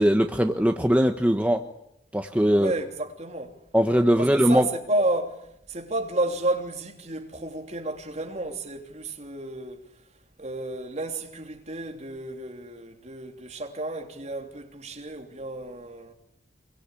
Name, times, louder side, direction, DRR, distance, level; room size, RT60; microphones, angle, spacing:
voice 1, 0.0-1.6 2.1-2.7 3.7-4.7, equal, 10° right, 1.2 m, -20 dB
voice 2, 2.5-3.5 4.2-9.8 10.4-16.1, right 2 dB, 35° right, 3.1 m, -31 dB
26.0 x 23.5 x 8.6 m
head